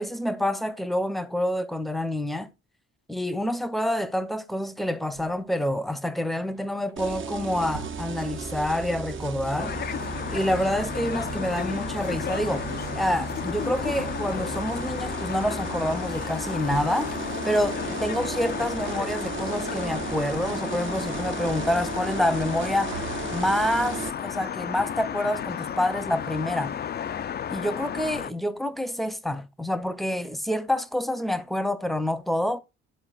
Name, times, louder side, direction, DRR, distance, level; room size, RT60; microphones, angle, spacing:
voice 1, 0.0-2.5 3.1-9.7 10.3-12.7 12.9-17.1 17.4-22.9 23.3-26.8 27.5-32.6, left 1 dB, ahead, 0.7 m, -27 dB
sound 1, 5.1-5.6 6.4-6.9 7.7-8.4 11.0-11.9 12.1-12.7 13.5-18.1 18.4-19.6 19.9-20.4 20.7-22.3 22.5-23.7, right 6 dB, 85° right, 0.8 m, -45 dB
sound 2, 7.0-24.1, right 5 dB, 40° right, 0.7 m, -35 dB
sound 3, 9.6-28.3, left 8 dB, 35° left, 0.4 m, -33 dB
12.5 x 4.3 x 2.4 m
cardioid pair, 90°, 30 cm